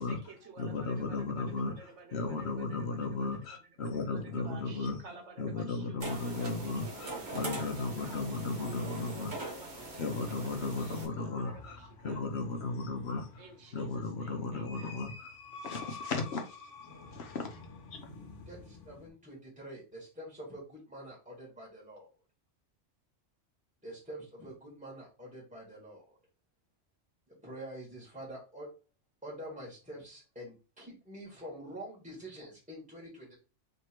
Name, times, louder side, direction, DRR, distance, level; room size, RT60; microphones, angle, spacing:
voice 1, 0.0-8.3 8.8-12.3 13.4-15.1, right 4 dB, 70° right, 1.2 m, -53 dB
voice 2, 0.6-1.7 2.1-5.0 5.4-9.3 10.0-13.4 13.7-15.3 15.6-16.6 17.1-17.6 17.9-18.0, left 3 dB, 65° left, 1.0 m, -35 dB
sound 1, 6.0-11.1, right 2 dB, 40° right, 1.2 m, -42 dB
voice 3, 11.0-11.4 18.5-22.1 23.8-26.2 27.3-28.7 29.2-33.3, right 1 dB, 5° right, 1.7 m, -46 dB
sound 2, 11.2-19.1, left 4 dB, 85° left, 1.3 m, -49 dB
3.3 x 3.1 x 4.4 m
omnidirectional pair, 1.2 m